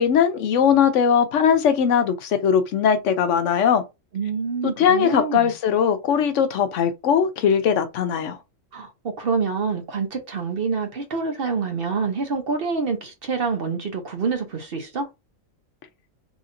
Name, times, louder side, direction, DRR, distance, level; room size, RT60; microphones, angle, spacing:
voice 1, 0.0-3.8 4.6-8.4, left 7 dB, 70° left, 0.9 m, -20 dB
voice 2, 4.1-5.5 8.7-15.1, right 5 dB, 50° right, 0.9 m, -26 dB
4.0 x 2.8 x 2.5 m
omnidirectional pair, 1.4 m